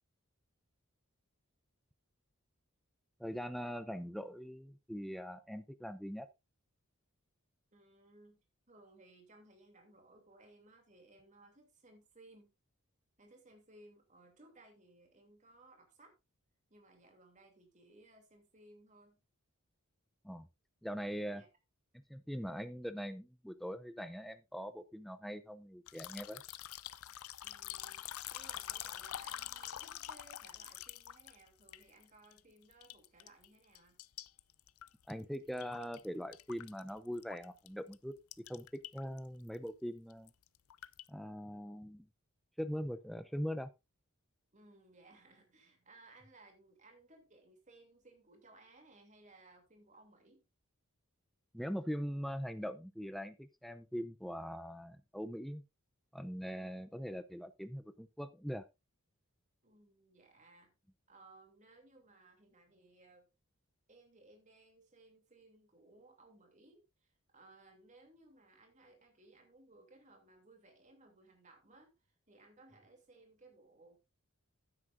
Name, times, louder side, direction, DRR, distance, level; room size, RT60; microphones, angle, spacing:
voice 1, 3.2-6.3 20.2-20.5 20.8-21.4 21.9-26.4 35.1-40.3 41.1-42.1 42.6-43.7 51.5-55.6 56.1-58.6, equal, ahead, 11 dB, 0.5 m, -42 dB
voice 2, 7.7-8.4 8.7-12.5 13.2-16.1 16.7-19.2 21.3-21.5 27.4-28.1 28.3-34.0 44.5-50.4 59.6-60.7 61.1-63.3 63.9-66.9 67.3-74.0, right 2 dB, 35° right, 3 dB, 2.8 m, -62 dB
sound 1, 25.9-32.4 32.7-33.5 33.7-36.1 36.3-37.7 37.9-38.0 38.3-39.2 39.5-39.7 40.1-41.1, left 12 dB, 80° left, 0.5 m, -46 dB
12.5 x 9.8 x 2.5 m, 0.23 s
head